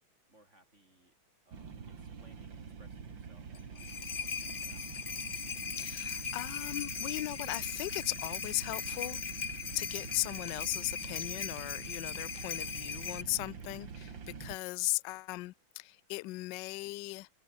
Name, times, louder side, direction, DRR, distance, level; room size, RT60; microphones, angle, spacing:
voice 1, 0.3-1.1 1.4-4.9, right 1 dB, 35° right, 5.6 m, -65 dB
sound 1, 1.5-14.6, right 6 dB, 70° right, 3.2 m, -46 dB
sound 2, 3.5-13.2, left 6 dB, 40° left, 0.9 m, -39 dB
voice 2, 5.8-9.5 9.7-17.3, left 22 dB, 75° left, 1.1 m, -37 dB
omnidirectional pair, 2.2 m